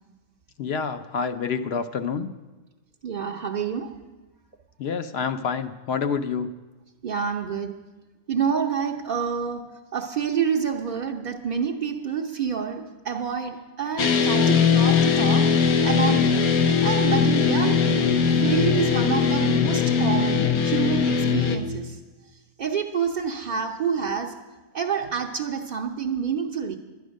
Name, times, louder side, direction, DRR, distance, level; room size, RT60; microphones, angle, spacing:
voice 1, 0.6-2.3 4.8-6.5, left 6 dB, 60° left, 10 dB, 0.7 m, -28 dB
voice 2, 3.0-3.9 7.0-7.7 8.3-16.4 16.8-22.0 22.6-24.4 24.7-26.8, right 7 dB, 50° right, -1 dB, 0.6 m, -28 dB
sound 1, 14.0-21.6, left 6 dB, 90° left, 1.3 m, -20 dB
11.5 x 10.0 x 6.3 m, 1.2 s
omnidirectional pair, 1.5 m